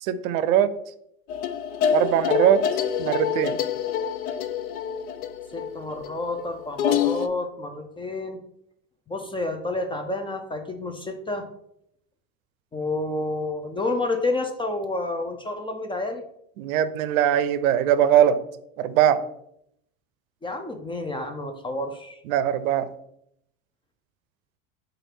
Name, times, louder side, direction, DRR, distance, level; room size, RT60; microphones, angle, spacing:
voice 1, 0.0-0.7 1.9-2.7 3.0-3.6 16.6-18.4 18.8-19.2 22.3-22.9, right 10 dB, 80° right, 14 dB, 0.5 m, -21 dB
sound 1, 1.3-7.3, left 8 dB, 90° left, 0.5 m, -26 dB
voice 2, 5.5-8.4 9.1-11.5 12.7-16.2 20.4-22.2, left 2 dB, 15° left, 6 dB, 0.3 m, -29 dB
4.6 x 2.5 x 4.4 m, 0.74 s
hypercardioid pair, 95°, 41 cm